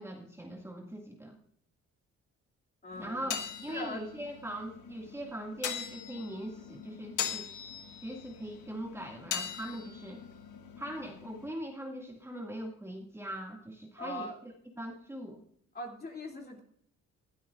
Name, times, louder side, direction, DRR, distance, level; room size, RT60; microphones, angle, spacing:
voice 1, 0.0-1.4 3.0-7.5 8.0-10.2 10.8-15.4, right 1 dB, 10° right, 0 dB, 2.1 m, -41 dB
voice 2, 2.8-3.4 3.7-4.0 14.0-14.3 15.7-16.6, left 1 dB, 30° left, 0 dB, 2.8 m, -40 dB
sound 1, 2.9-11.5, left 8 dB, 80° left, 1.6 m, -41 dB
19.5 x 12.5 x 2.5 m, 0.66 s
cardioid pair, 90°, 30 cm